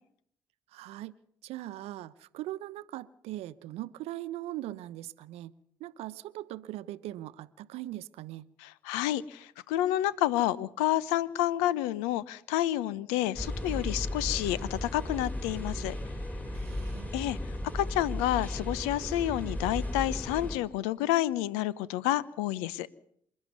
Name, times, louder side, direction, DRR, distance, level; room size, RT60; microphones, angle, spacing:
voice 1, 0.7-1.1 1.4-5.5 5.8-8.5 16.5-17.1, right 15 dB, 65° right, 16 dB, 0.9 m, -40 dB
voice 2, 8.6-16.0 17.1-22.9, left 14 dB, 75° left, 20 dB, 0.9 m, -29 dB
sound 1, 13.3-20.6, left 1 dB, 15° left, 6.2 m, -35 dB
27.0 x 11.5 x 9.5 m, 0.69 s
hypercardioid pair, 55°, 11 cm